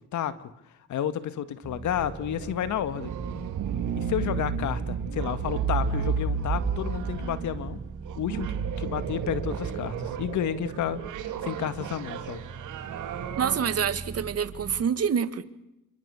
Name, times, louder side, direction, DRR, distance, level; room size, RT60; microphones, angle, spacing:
voice 1, 0.9-3.1 3.9-7.8 8.2-12.4, left 10 dB, 75° left, 12 dB, 2.0 m, -31 dB
sound 1, 1.6-14.8, right 5 dB, 30° right, 2.2 m, -41 dB
sound 2, 1.9-13.6, right 6 dB, 85° right, 3.0 m, -32 dB
voice 2, 13.4-15.5, right 7 dB, 50° right, 11 dB, 2.2 m, -26 dB
29.0 x 23.0 x 7.1 m, 0.88 s
cardioid pair, 90°, 30 cm